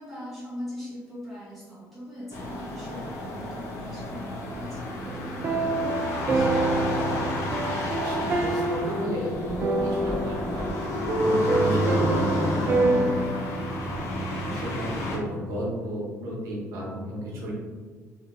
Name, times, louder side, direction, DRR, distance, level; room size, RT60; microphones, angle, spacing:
voice 1, 0.0-6.6, equal, ahead, -9 dB, 1.1 m, -41 dB
sound 1, 2.3-15.2, left 1 dB, 55° left, 0.6 m, -30 dB
sound 2, 5.0-13.2, right 2 dB, 35° right, 0.4 m, -27 dB
voice 2, 8.0-10.7 11.2-13.4 13.9-17.5, equal, 70° right, -4 dB, 0.9 m, -34 dB
2.8 x 2.7 x 2.5 m, 1.5 s
cardioid pair, 130°, 6 cm